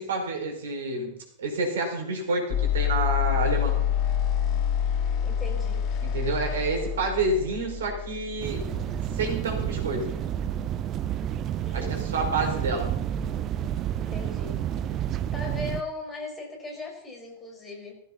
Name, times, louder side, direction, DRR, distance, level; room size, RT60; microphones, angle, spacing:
voice 1, 0.0-3.8 6.0-8.6 9.1-10.2 11.7-12.9, right 3 dB, 60° right, 2 dB, 5.0 m, -28 dB
sound 1, 2.5-10.6, left 9 dB, 40° left, 1.8 m, -28 dB
voice 2, 5.2-5.9 11.6-12.3 14.0-14.6 14.9-18.0, left 2 dB, 15° left, 1 dB, 5.0 m, -39 dB
sound 2, 8.4-15.8, right 10 dB, 30° right, 0.8 m, -30 dB
18.5 x 15.0 x 4.1 m, 0.72 s
figure-of-eight pair, 90°, 0 cm